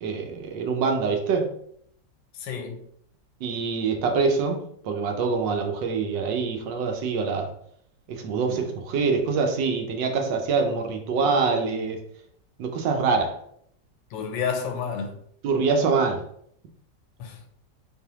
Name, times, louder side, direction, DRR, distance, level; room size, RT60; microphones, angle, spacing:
voice 1, 0.0-1.5 3.4-7.5 8.1-12.0 12.6-13.4 15.4-16.2, right 4 dB, 80° right, 1.4 m, -25 dB
voice 2, 2.3-2.8 8.4-8.7 10.6-10.8 14.1-15.2 17.2-17.4, left 6 dB, 85° left, 1.4 m, -31 dB
4.0 x 3.1 x 2.9 m
omnidirectional pair, 2.0 m